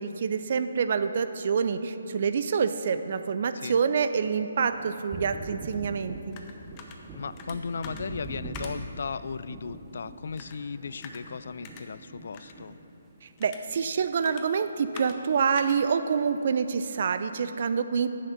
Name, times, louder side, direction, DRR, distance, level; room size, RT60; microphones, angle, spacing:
voice 1, 0.0-6.4 13.2-18.1, right 6 dB, 50° right, 11 dB, 0.5 m, -27 dB
Thunder, 4.6-14.4 14.7-15.9, right 2 dB, 15° right, 0.7 m, -44 dB
sound 1, 5.7-17.4, left 4 dB, 25° left, 0.8 m, -50 dB
voice 2, 7.1-12.8, left 5 dB, 60° left, 15 dB, 0.3 m, -36 dB
9.9 x 6.6 x 5.8 m, 2.9 s
figure-of-eight pair, 145°, 0 cm